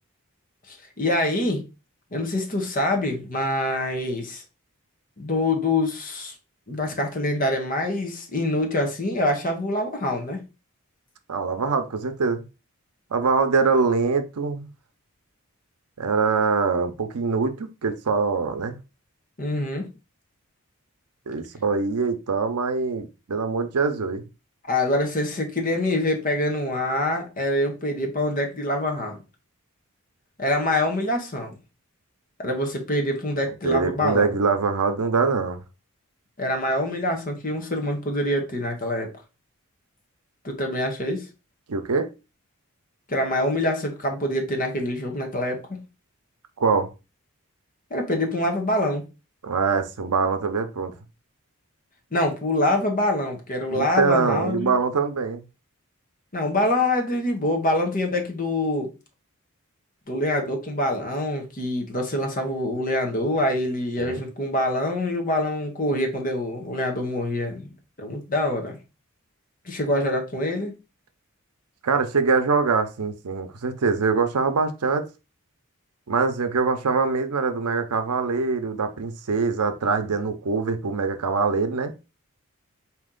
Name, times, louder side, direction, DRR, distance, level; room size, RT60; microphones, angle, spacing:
voice 1, 0.7-1.6 2.1-4.4 5.2-6.3 6.7-10.4 19.4-19.9 24.6-29.2 30.4-31.5 32.4-34.3 36.4-39.1 40.4-41.3 43.1-45.6 47.9-49.0 52.1-54.7 56.3-58.9 60.1-67.7 68.0-68.8 69.6-70.7, left 1 dB, 35° left, 1.0 m, -25 dB
voice 2, 11.3-12.4 13.1-14.7 16.0-18.8 21.3-24.2 33.6-35.6 41.7-42.1 46.6-46.9 49.4-50.9 53.7-55.4 64.0-64.2 71.8-75.0 76.1-81.9, right 4 dB, 85° right, 0.6 m, -23 dB
4.3 x 2.9 x 3.7 m
head